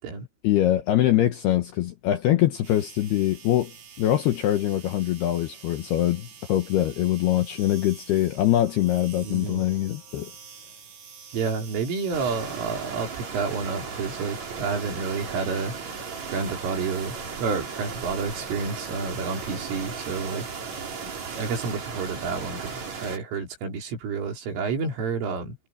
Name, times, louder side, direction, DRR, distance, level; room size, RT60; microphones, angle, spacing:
voice 1, 0.4-10.3, left 13 dB, 75° left, 2.5 m, -23 dB
sound 1, 2.6-21.7, right 7 dB, 55° right, 6.6 m, -47 dB
voice 2, 9.2-9.6 11.3-15.7 16.3-20.5 21.3-25.6, right 5 dB, 70° right, 6.8 m, -30 dB
sound 2, 12.1-23.2, right 5 dB, 35° right, 4.4 m, -36 dB
omnidirectional pair, 5.9 m